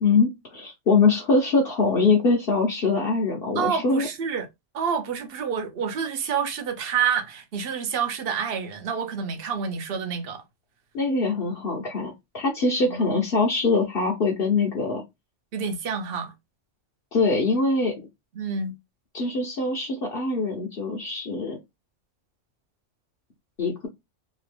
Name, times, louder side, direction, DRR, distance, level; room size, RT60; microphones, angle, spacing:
voice 1, 0.0-4.1 10.9-15.0 17.1-17.9 19.1-21.6 23.6-23.9, left 3 dB, 55° left, 0.9 m, -23 dB
voice 2, 3.5-4.5 4.7-10.4 12.8-13.2 15.5-16.3 18.3-18.8, right 7 dB, 55° right, 0.8 m, -28 dB
2.9 x 2.3 x 3.2 m
omnidirectional pair, 1.3 m